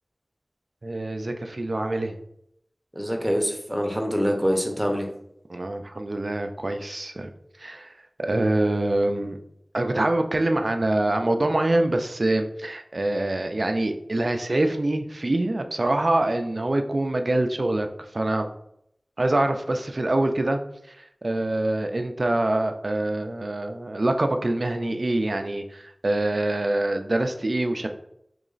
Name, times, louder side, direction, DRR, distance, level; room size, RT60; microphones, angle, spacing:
voice 1, 0.8-2.2 5.5-7.3 7.6-9.4 9.7-17.9 18.1-18.5 19.2-20.6 20.9-27.9, right 1 dB, 65° right, 6 dB, 0.4 m, -25 dB
voice 2, 3.0-5.1, equal, 5° right, 2 dB, 0.8 m, -25 dB
3.1 x 3.0 x 3.8 m, 0.76 s
wide cardioid pair, 40°, 0 cm